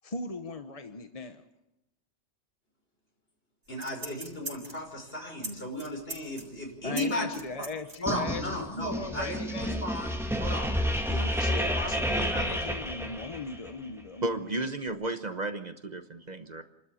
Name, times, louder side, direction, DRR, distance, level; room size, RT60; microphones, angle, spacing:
voice 1, 0.0-1.4 6.8-9.8 11.4-14.7, left 3 dB, 35° left, 7 dB, 1.0 m, -38 dB
voice 2, 3.7-7.4 8.0-10.1 10.4-10.7 11.0-12.5, left 1 dB, 60° left, 1 dB, 5.7 m, -35 dB
sound 1, 3.7-4.9 5.4-5.5 5.8-8.0 8.3-8.4, right 2 dB, 80° right, 4.4 m, -40 dB
sound 2, 8.1-13.7, equal, ahead, 2.0 m, -30 dB
voice 3, 14.2-16.6, right 2 dB, 40° right, 8 dB, 1.2 m, -33 dB
28.5 x 13.0 x 8.4 m, 0.95 s
omnidirectional pair, 1.1 m